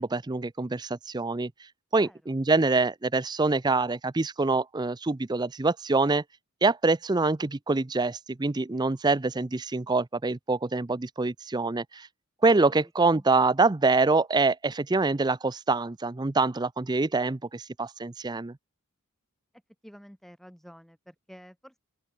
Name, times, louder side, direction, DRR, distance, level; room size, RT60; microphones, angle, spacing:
voice 1, 0.0-1.5 1.9-6.2 6.6-12.1 12.4-18.6, right 3 dB, 20° right, 0.5 m, -25 dB
voice 2, 1.9-2.3 12.8-13.3 19.8-21.8, equal, ahead, 6.8 m, -50 dB
open air
head